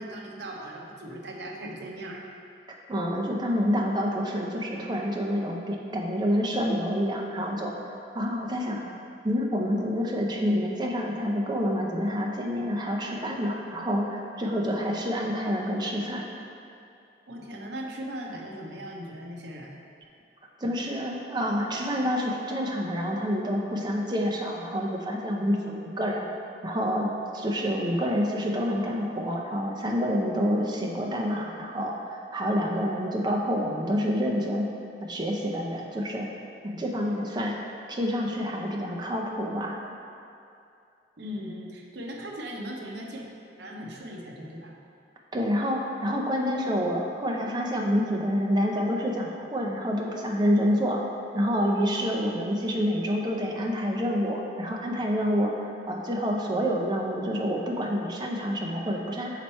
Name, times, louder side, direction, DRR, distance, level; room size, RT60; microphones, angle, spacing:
voice 1, 0.0-2.2 14.4-14.7 17.3-19.8 41.2-43.3 43.6-44.7, equal, 70° right, 0 dB, 0.8 m, -38 dB
voice 2, 2.7-7.7 8.1-8.8 9.2-16.2 20.6-26.3 26.6-27.1 27.3-34.7 35.0-36.3 36.6-37.6 37.9-39.7 45.3-51.0 51.3-55.5 55.9-59.4, equal, 25° right, -1 dB, 0.6 m, -28 dB
5.9 x 4.4 x 4.3 m, 2.6 s
head